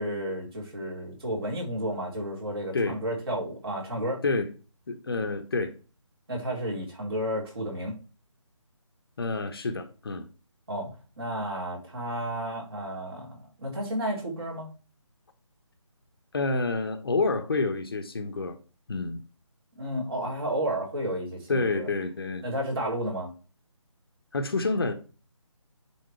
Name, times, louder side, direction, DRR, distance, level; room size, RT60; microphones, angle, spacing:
voice 1, 0.0-4.2 6.3-8.0 10.7-10.9 11.2-14.7 19.8-21.9 22.4-23.3, right 1 dB, 50° right, -2 dB, 4.2 m, -32 dB
voice 2, 4.9-5.7 9.2-10.3 16.3-18.6 18.9-19.2 21.5-22.4 24.3-24.9, left 3 dB, 45° left, 7 dB, 1.1 m, -28 dB
9.7 x 3.7 x 4.6 m, 0.34 s
figure-of-eight pair, 150°, 17 cm